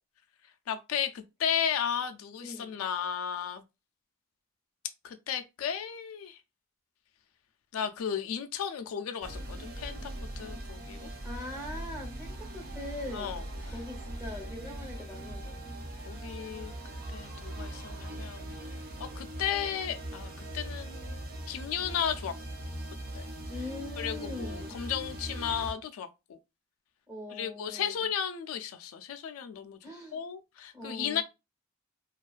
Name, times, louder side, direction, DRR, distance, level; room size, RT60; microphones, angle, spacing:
voice 1, 0.7-3.6 5.0-6.4 7.7-11.1 13.1-13.4 16.1-16.7 17.1-18.5 19.0-21.2 21.5-22.4 23.1-23.2 24.0-26.4 27.3-29.8 30.1-31.2, left 8 dB, 90° left, 0.3 m, -34 dB
voice 2, 2.4-2.7 11.2-13.4 13.7-15.7 23.5-24.8 27.1-28.1 29.8-30.2 30.7-31.2, left 2 dB, 15° right, 0.9 m, -42 dB
sound 1, 9.2-25.7, right 1 dB, 45° right, 0.4 m, -40 dB
sound 2, 12.3-18.2, right 4 dB, 85° right, 0.7 m, -54 dB
2.3 x 2.2 x 2.4 m
head